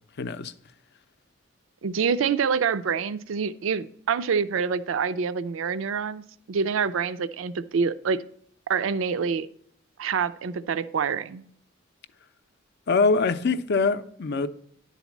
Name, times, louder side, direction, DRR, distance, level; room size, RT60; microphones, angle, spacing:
voice 1, 0.2-0.5 12.9-14.5, left 4 dB, 55° left, 0.5 m, -23 dB
voice 2, 1.8-6.2 6.5-8.2 8.7-9.5 10.0-11.4, right 6 dB, 70° right, 0.4 m, -26 dB
10.5 x 4.1 x 7.1 m
head